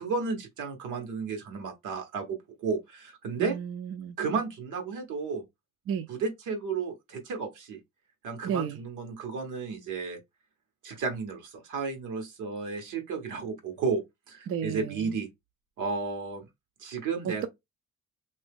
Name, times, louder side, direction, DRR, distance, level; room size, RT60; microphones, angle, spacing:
voice 1, 0.0-3.6 4.2-5.4 6.1-7.8 8.2-10.2 10.8-14.0 14.3-15.3 15.8-16.4 16.8-17.5, right 5 dB, 85° right, 1.3 m, -33 dB
voice 2, 3.4-4.2 5.9-6.1 8.4-8.8 14.5-15.2 17.2-17.5, right 8 dB, 50° right, 0.4 m, -33 dB
2.8 x 2.7 x 3.5 m
cardioid pair, 90°, 30 cm